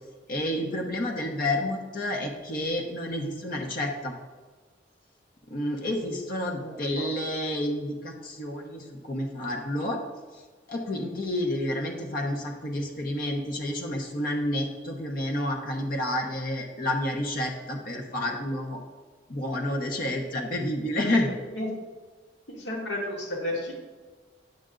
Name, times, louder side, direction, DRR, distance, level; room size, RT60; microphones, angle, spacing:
voice 1, 0.3-4.1 5.5-10.0 10.7-18.8 19.3-21.3, left 1 dB, 50° left, 1 dB, 1.0 m, -30 dB
voice 2, 6.6-7.1 21.5-21.7 22.5-23.7, left 1 dB, 75° left, -1 dB, 2.0 m, -33 dB
8.9 x 6.7 x 3.8 m, 1.3 s
head